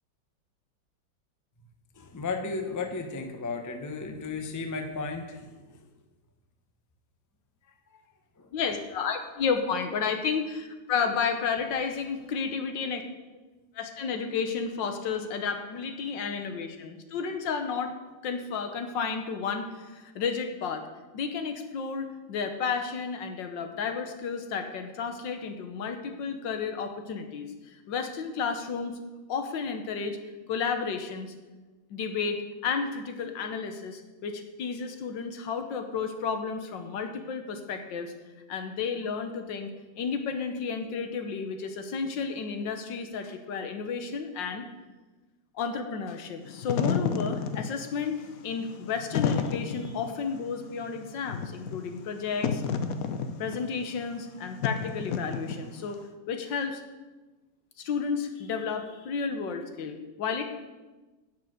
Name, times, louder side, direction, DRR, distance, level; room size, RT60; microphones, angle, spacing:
voice 1, 2.0-5.8 7.9-8.0 8.4-8.5, left 4 dB, 20° left, 5 dB, 0.5 m, -34 dB
voice 2, 8.5-13.0 13.7-17.9 18.2-20.9 21.1-29.0 29.3-30.2 30.5-31.3 31.9-38.1 38.5-39.7 40.0-44.7 45.6-52.6 53.4-56.0 56.3-56.8 57.8-60.4, left 5 dB, 80° left, 6 dB, 1.7 m, -32 dB
Wind / Fire, 46.4-56.0, left 6 dB, 60° left, 1.0 m, -31 dB
10.0 x 5.9 x 7.8 m, 1.2 s
omnidirectional pair, 2.0 m